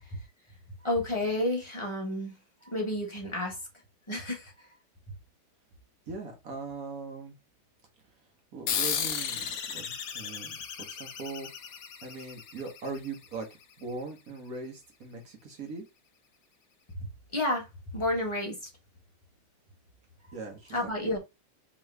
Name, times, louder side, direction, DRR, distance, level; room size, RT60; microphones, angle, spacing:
voice 1, 0.8-2.3 2.6-3.6 4.1-4.5 17.3-17.7 17.9-18.7 20.7-21.2, left 1 dB, 25° left, 0.7 m, -30 dB
voice 2, 6.1-7.3 8.5-10.6 10.9-11.5 12.0-13.5 13.8-15.8 20.3-21.2, right 4 dB, 50° right, 1.4 m, -40 dB
sound 1, 8.7-13.6, left 7 dB, 65° left, 0.9 m, -35 dB
3.8 x 3.0 x 3.2 m
omnidirectional pair, 2.3 m